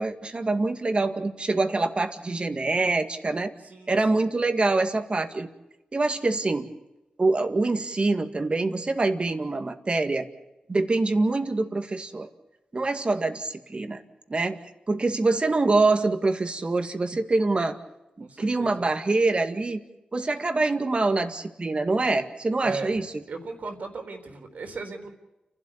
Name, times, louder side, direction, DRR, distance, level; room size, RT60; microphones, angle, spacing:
voice 1, 0.0-3.5 3.9-5.5 5.9-6.7 7.2-10.3 10.7-12.3 12.7-14.0 14.3-14.6 14.9-17.8 18.2-19.8 20.1-23.1, right 3 dB, 40° right, 7 dB, 2.1 m, -25 dB
voice 2, 3.6-4.2 18.2-18.9 22.6-22.9 23.3-25.1, right 4 dB, 70° right, 5 dB, 3.9 m, -37 dB
30.0 x 12.5 x 8.7 m, 0.98 s
cardioid pair, 50°, 3 cm